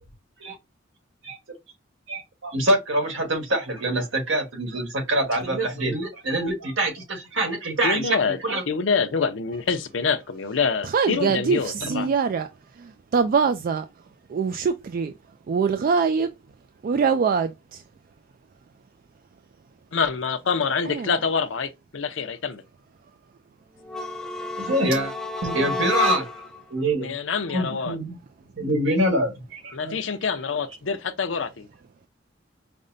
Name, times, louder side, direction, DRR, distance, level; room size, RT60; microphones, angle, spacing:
voice 1, 2.1-8.6 11.8-12.1 24.6-25.1 25.4-26.4 26.7-27.1 27.5-28.2 28.6-29.9, right 1 dB, 75° right, 1.5 m, -25 dB
voice 2, 7.8-8.4 8.7-12.1 19.9-22.6 27.0-28.0 29.7-31.7, left 5 dB, 75° left, 0.6 m, -26 dB
voice 3, 10.8-14.0 14.3-15.1 15.5-16.3 16.8-17.8 20.8-21.2, right 5 dB, 50° right, 0.3 m, -24 dB
sound 1, 23.8-26.6, left 3 dB, 5° left, 0.5 m, -29 dB
5.1 x 2.1 x 2.5 m
head